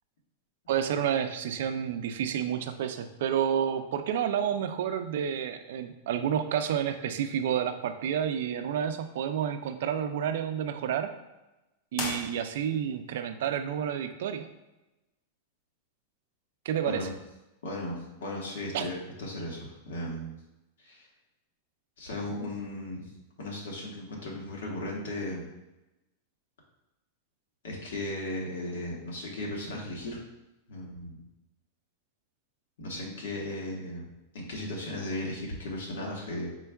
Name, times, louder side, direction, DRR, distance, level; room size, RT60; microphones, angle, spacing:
voice 1, 0.7-11.1 11.9-14.5 16.7-17.1 18.7-18.9, right 9 dB, 60° right, 8 dB, 0.4 m, -30 dB
sound 1, 11.9-13.0, left 4 dB, 30° left, 0.5 m, -37 dB
voice 2, 17.6-20.3 20.8-21.1 22.0-23.1 23.4-25.5 27.6-30.2 30.7-31.2 32.8-34.1 34.3-36.5, left 1 dB, 85° left, -2 dB, 1.4 m, -36 dB
4.4 x 4.4 x 2.3 m, 0.98 s
supercardioid pair, 175°, 0 cm